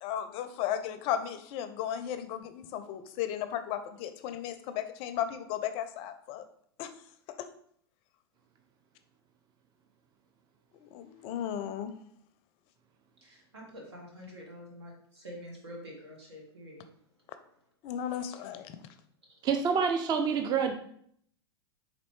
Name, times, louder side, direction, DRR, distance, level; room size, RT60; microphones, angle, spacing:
voice 1, 0.0-6.4 6.8-6.9 7.4-7.5 10.8-11.9 17.8-18.8, left 10 dB, 45° left, 10 dB, 0.4 m, -35 dB
voice 2, 13.2-16.8, equal, 85° right, -1 dB, 1.3 m, -47 dB
voice 3, 19.4-20.7, right 6 dB, 30° right, 6 dB, 0.5 m, -27 dB
4.1 x 3.0 x 3.1 m, 0.65 s
hypercardioid pair, 95°, 14 cm